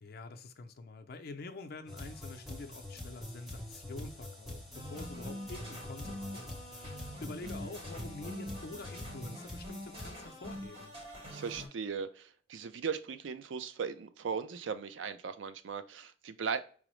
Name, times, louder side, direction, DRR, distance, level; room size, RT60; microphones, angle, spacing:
voice 1, 0.0-6.4 6.7-10.9, left 3 dB, 55° left, 0.5 m, -47 dB
sound 1, 1.9-10.1, left 1 dB, ahead, 0.7 m, -45 dB
sound 2, 4.7-11.7, equal, 30° right, 1.0 m, -45 dB
voice 2, 11.3-16.6, right 6 dB, 75° right, 0.4 m, -38 dB
4.8 x 2.0 x 3.0 m
head